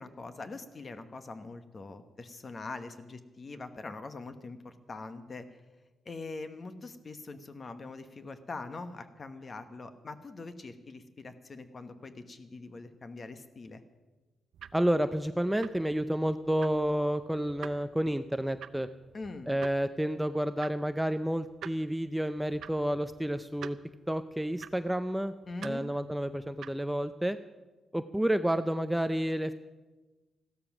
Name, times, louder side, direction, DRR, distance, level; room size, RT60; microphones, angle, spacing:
voice 1, 0.0-5.5 6.0-13.8 19.1-19.5 25.5-25.9, left 3 dB, 35° left, 9 dB, 1.2 m, -43 dB
sound 1, 14.5-27.1, right 8 dB, 75° right, 0.6 m, -50 dB
voice 2, 14.7-18.9 19.5-23.8 24.1-25.3 25.6-27.4 27.9-29.5, right 1 dB, 5° right, 10 dB, 0.5 m, -30 dB
15.0 x 12.5 x 6.0 m, 1.2 s
cardioid pair, 110°, 0 cm